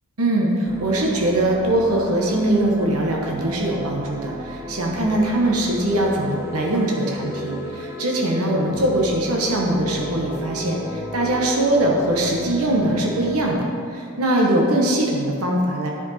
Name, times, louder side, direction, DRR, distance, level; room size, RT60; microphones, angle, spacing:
voice 1, 0.2-15.9, right 1 dB, 85° right, -1 dB, 1.1 m, -21 dB
sound 1, 0.6-13.6, right 1 dB, 10° right, 0.4 m, -35 dB
sound 2, 6.2-12.3, equal, 60° left, 1.0 m, -34 dB
9.6 x 5.0 x 4.2 m, 2.3 s
head